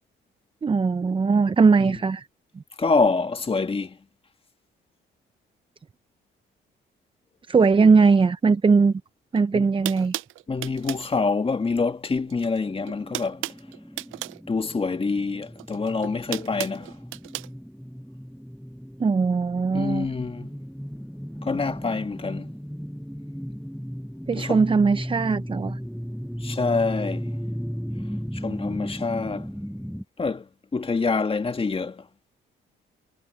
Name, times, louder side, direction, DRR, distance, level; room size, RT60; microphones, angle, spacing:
voice 1, 0.6-2.3 7.5-9.0 9.3-10.2 19.0-20.1 24.3-25.8, right 4 dB, 25° right, 0.6 m, -20 dB
voice 2, 2.8-4.0 9.5-9.7 10.5-13.4 14.5-16.9 19.7-20.5 21.4-22.5 24.4-24.6 26.4-27.3 28.3-29.5 30.2-30.5 30.7-32.0, left 4 dB, 30° left, 1.9 m, -26 dB
sound 1, 9.3-9.4 9.8-11.1 12.3-12.6 12.8-14.4 15.6-17.5, right 16 dB, 85° right, 0.5 m, -34 dB
sound 2, 12.7-30.0, equal, ahead, 1.6 m, -35 dB
cardioid pair, 90°, 20 cm